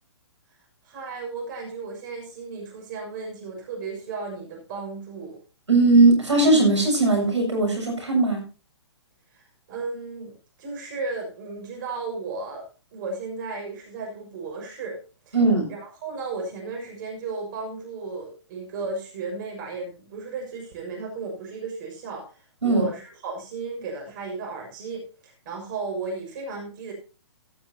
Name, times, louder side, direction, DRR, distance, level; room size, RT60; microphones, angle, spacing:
voice 1, 0.8-5.4 9.3-9.4 9.7-12.6 12.9-15.0 15.3-15.4 15.7-26.9, right 3 dB, 45° right, 1 dB, 6.4 m, -34 dB
voice 2, 5.7-8.4 15.3-15.7 22.6-22.8, right 2 dB, 85° right, 3 dB, 7.3 m, -19 dB
15.0 x 12.0 x 2.9 m, 0.34 s
figure-of-eight pair, 125°, 15 cm